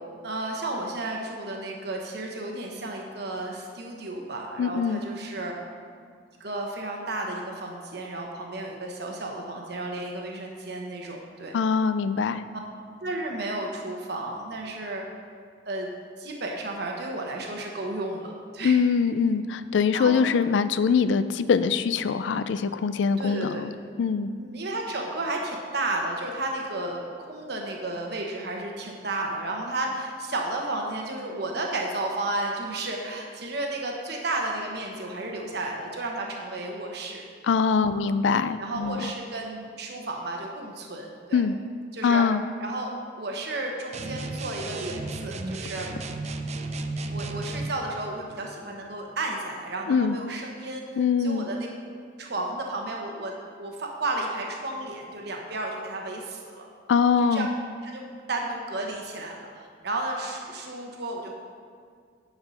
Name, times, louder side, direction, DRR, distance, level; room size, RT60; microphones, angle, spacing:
voice 1, 0.2-5.5 6.4-11.5 13.0-15.0 15.7-15.9 16.2-18.8 19.9-20.2 23.2-23.7 24.4-37.2 37.8-38.0 38.6-41.4 41.9-42.3 42.6-42.9 43.2-45.9 47.1-50.8 51.2-51.7 52.2-56.7 57.3-57.5 57.8-58.0 58.3-61.3, right 2 dB, 65° right, 0 dB, 1.1 m, -33 dB
voice 2, 4.6-5.0 11.5-12.4 18.6-23.7 24.0-24.3 37.5-39.1 41.3-41.6 42.0-42.4 49.9-50.2 51.0-51.5 56.9-57.5, left 6 dB, 85° left, 13 dB, 0.4 m, -23 dB
sound 1, 43.9-47.8, right 2 dB, 40° right, 0.5 m, -33 dB
10.0 x 4.8 x 5.6 m, 2.1 s
head